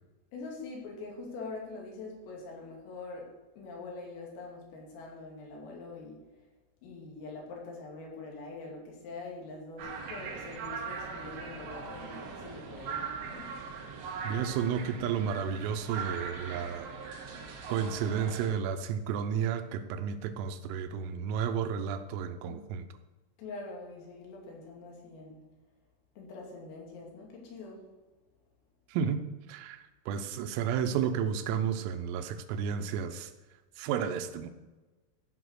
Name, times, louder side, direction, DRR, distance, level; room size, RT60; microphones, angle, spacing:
voice 1, 0.3-3.3 3.6-6.3 6.8-13.6 23.4-25.4 26.2-27.9, left 3 dB, 90° left, -1 dB, 5.2 m, -44 dB
sound 1, 9.8-18.5, right 5 dB, 60° right, 2.8 m, -40 dB
voice 2, 14.2-16.9 17.7-22.9 28.9-29.2 29.5-33.3 33.8-34.5, right 7 dB, 90° right, 8 dB, 3.5 m, -32 dB
15.0 x 5.8 x 6.4 m, 1.2 s
omnidirectional pair, 5.8 m